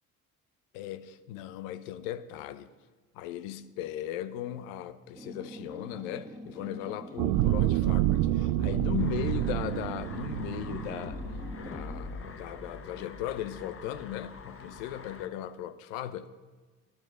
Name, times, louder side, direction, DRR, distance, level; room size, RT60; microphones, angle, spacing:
voice 1, 0.7-2.7 3.1-11.2 11.6-16.3, left 11 dB, 80° left, 0.7 m, -37 dB
sound 1, 5.2-12.2, equal, 10° right, 1.5 m, -45 dB
sound 2, 7.2-11.7 12.2-12.3, right 15 dB, 65° right, 0.5 m, -28 dB
sound 3, 9.0-15.3, left 4 dB, 35° left, 1.1 m, -44 dB
10.5 x 8.9 x 6.3 m
hypercardioid pair, 55°, 39 cm